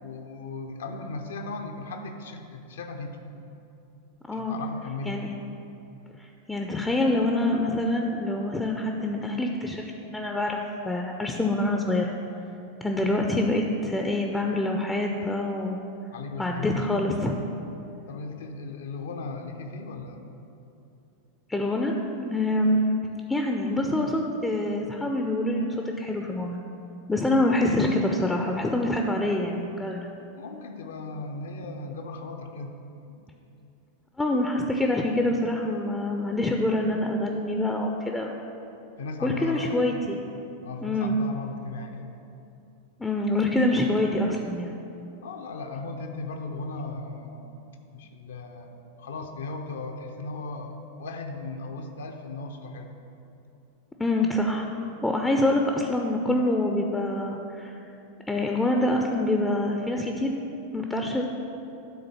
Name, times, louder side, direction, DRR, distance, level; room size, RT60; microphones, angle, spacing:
voice 1, 0.0-3.2 4.3-5.2 16.1-16.9 18.1-20.2 30.0-32.8 33.1-33.2 39.0-39.8 40.6-42.1 45.2-53.0, left 3 dB, 65° left, 4 dB, 0.7 m, -37 dB
voice 2, 4.3-4.6 5.1-5.3 6.2-12.2 12.8-15.8 16.4-17.4 21.5-22.8 23.3-26.6 27.1-30.1 34.2-38.4 39.2-40.2 40.8-41.2 43.0-44.7 54.0-54.7 55.0-57.8 58.3-60.3 60.7-61.3, left 1 dB, 10° left, 2 dB, 0.5 m, -26 dB
9.5 x 3.9 x 5.7 m, 2.8 s
figure-of-eight pair, 90°, 0 cm